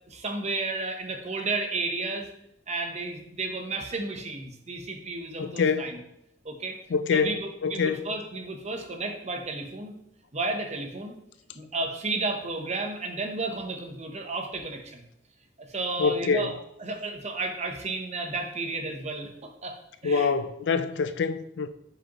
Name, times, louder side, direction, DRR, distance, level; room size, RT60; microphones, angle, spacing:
voice 1, 0.1-2.3 2.7-6.0 6.4-6.8 7.1-9.9 10.3-11.2 11.5-15.0 15.6-16.5 16.8-19.8 20.0-20.3, right 3 dB, 40° right, 0.8 m, -32 dB
voice 2, 5.4-5.9 6.9-7.3 7.6-8.1 16.0-16.5 20.0-21.7, left 5 dB, 75° left, 0.4 m, -25 dB
7.3 x 4.9 x 3.0 m
head